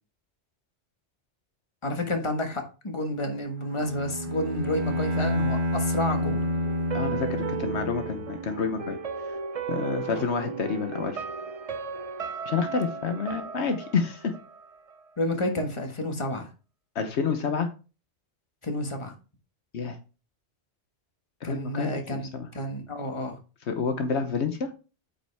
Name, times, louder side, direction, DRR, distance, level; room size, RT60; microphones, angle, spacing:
voice 1, 1.8-6.5 10.1-10.3 15.2-16.5 18.6-19.1 21.4-22.3 22.5-23.4, left 1 dB, 25° left, 4 dB, 1.5 m, -30 dB
Bowed string instrument, 3.7-8.5, left 1 dB, 70° right, 1.5 m, -29 dB
sound 1, 6.1-15.1 15.4-15.5, right 6 dB, 45° right, 0.5 m, -36 dB
voice 2, 6.9-9.0 9.7-11.2 12.5-14.3 16.9-17.7 19.7-20.0 21.4-22.5 23.7-24.7, left 5 dB, 75° left, 7 dB, 1.2 m, -29 dB
8.8 x 5.4 x 3.4 m, 0.33 s
omnidirectional pair, 1.2 m